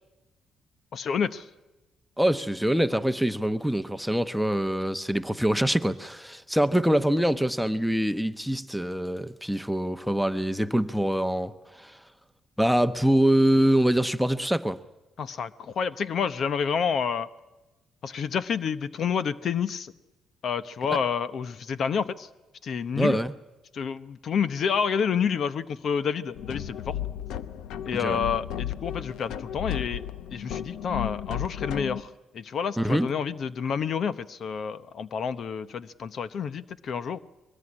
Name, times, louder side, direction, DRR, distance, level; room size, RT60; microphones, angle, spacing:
voice 1, 0.9-1.5 15.2-17.3 18.0-19.9 20.4-22.3 22.6-23.2 23.7-27.0 27.8-30.0 30.3-37.2, left 6 dB, 60° left, 0.9 m, -29 dB
voice 2, 2.2-12.0 12.6-14.8 23.0-23.3 28.0-28.2 32.8-33.1, right 1 dB, ahead, 1.0 m, -24 dB
sound 1, 26.4-32.0, left 10 dB, 90° left, 0.8 m, -34 dB
23.0 x 20.0 x 9.9 m
cardioid pair, 90°, 0 cm